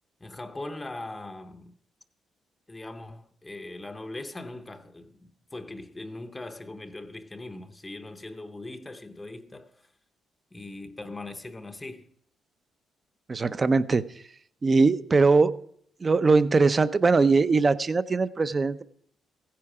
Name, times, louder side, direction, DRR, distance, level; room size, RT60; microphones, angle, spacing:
voice 1, 0.2-1.8 2.7-9.9 10.5-12.1, left 2 dB, 20° left, 0.8 m, -40 dB
voice 2, 13.3-14.0 14.6-15.6 16.0-18.8, right 4 dB, 30° right, 0.6 m, -21 dB
15.0 x 10.0 x 4.8 m
cardioid pair, 90°, 0 cm